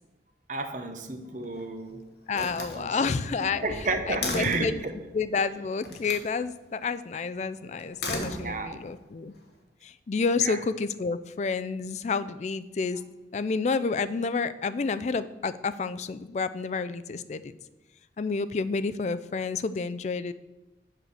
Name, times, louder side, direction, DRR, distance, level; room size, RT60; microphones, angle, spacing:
voice 1, 0.5-2.1 2.3-4.9 8.4-8.8 10.4-10.6, right 3 dB, 45° right, 6 dB, 0.8 m, -32 dB
Slam, 1.3-1.8 2.3-4.8 5.8-6.3 7.8-8.9, left 2 dB, 70° left, 1.3 m, -36 dB
voice 2, 2.3-3.6 4.1-4.8 5.1-9.3 9.8-13.0 13.3-17.5 18.2-20.3, left 4 dB, 40° left, 13 dB, 0.3 m, -29 dB
7.5 x 4.8 x 6.5 m, 1.0 s
head